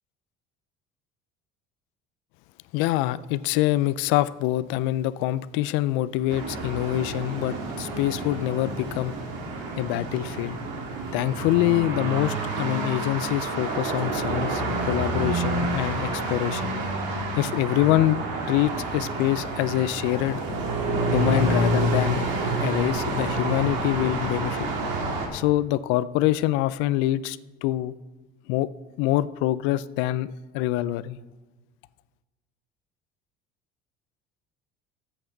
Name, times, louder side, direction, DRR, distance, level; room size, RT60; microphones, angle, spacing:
voice 1, 2.7-9.1 9.8-10.6 11.1-16.7 17.4-18.2 18.5-20.4 21.1-22.2 22.6-24.7 25.3-27.9 28.5-28.7 29.0-31.2, left 15 dB, 80° left, 0.4 m, -25 dB
sound 1, 6.3-25.3, right 2 dB, 75° right, 1.9 m, -28 dB
13.0 x 8.0 x 3.9 m
cardioid pair, 175°, 19 cm